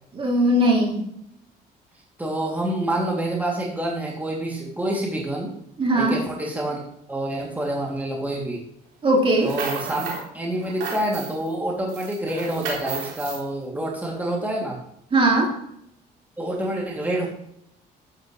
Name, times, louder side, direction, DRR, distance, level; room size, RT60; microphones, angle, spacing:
voice 1, 0.1-1.1 5.8-6.2 9.0-9.5 15.1-15.6, right 1 dB, 35° right, -1 dB, 3.1 m, -19 dB
voice 2, 2.2-5.5 6.0-6.8 7.1-8.6 9.4-14.8 16.4-17.3, right 1 dB, 10° right, -2 dB, 2.9 m, -27 dB
sound 1, 9.3-10.3 10.6-11.5 11.9-13.4, right 4 dB, 90° right, 3.7 m, -33 dB
12.0 x 10.0 x 3.3 m, 0.74 s
cardioid pair, 110°, 17 cm